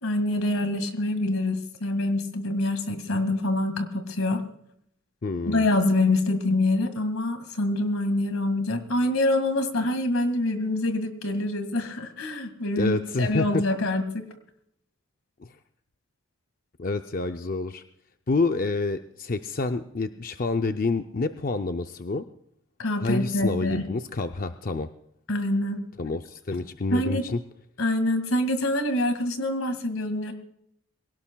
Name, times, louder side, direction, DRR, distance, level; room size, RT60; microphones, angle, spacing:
voice 1, 0.0-4.4 5.5-14.3 22.8-23.9 25.3-25.8 26.9-27.3 27.8-30.3, left 1 dB, 80° left, 9 dB, 2.0 m, -25 dB
voice 2, 5.2-5.6 12.8-13.7 15.4-15.5 16.8-17.8 18.3-22.2 23.0-24.9 26.0-27.4, left 3 dB, 40° left, 7 dB, 0.5 m, -28 dB
23.0 x 17.5 x 2.3 m, 0.72 s
head